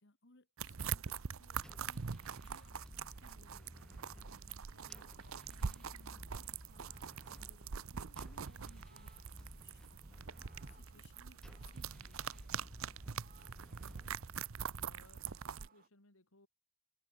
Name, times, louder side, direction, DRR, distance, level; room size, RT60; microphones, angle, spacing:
voice 1, 0.0-13.2, left 2 dB, 50° left, 1.8 m, -66 dB
sound 1, 0.6-15.7, right 6 dB, 65° right, 0.7 m, -44 dB
sound 2, 1.6-14.7, equal, 5° left, 0.8 m, -56 dB
Fowl, 3.9-15.9, right 5 dB, 40° right, 1.5 m, -69 dB
voice 2, 14.8-16.5, left 2 dB, 65° left, 3.6 m, -65 dB
head